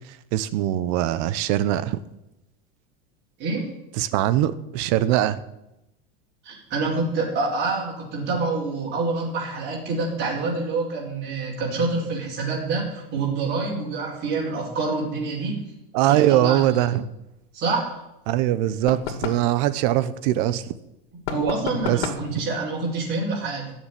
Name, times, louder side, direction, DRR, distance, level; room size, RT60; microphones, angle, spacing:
voice 1, 0.3-2.0 4.0-5.4 15.9-17.1 18.3-20.6 21.8-22.1, right 13 dB, 55° right, 15 dB, 1.0 m, -22 dB
voice 2, 6.4-15.6 16.0-16.8 17.5-17.9 21.3-23.7, right 3 dB, 35° right, -5 dB, 4.6 m, -27 dB
sound 1, 18.9-19.5 21.2-22.3, left 6 dB, 75° left, 2.6 m, -31 dB
13.5 x 7.2 x 10.0 m, 0.89 s
supercardioid pair, 150°, 30 cm